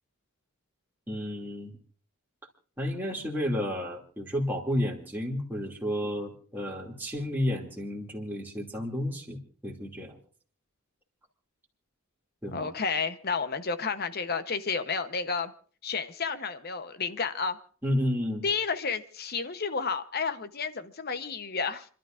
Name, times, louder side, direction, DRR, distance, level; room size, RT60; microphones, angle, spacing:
voice 1, 1.1-1.8 2.8-10.2 12.4-12.7 17.8-18.4, equal, 10° right, -2 dB, 2.6 m, -31 dB
voice 2, 12.5-15.5 15.8-17.6 18.4-21.9, left 5 dB, 45° left, 10 dB, 0.9 m, -31 dB
29.5 x 12.0 x 2.5 m, 0.42 s
head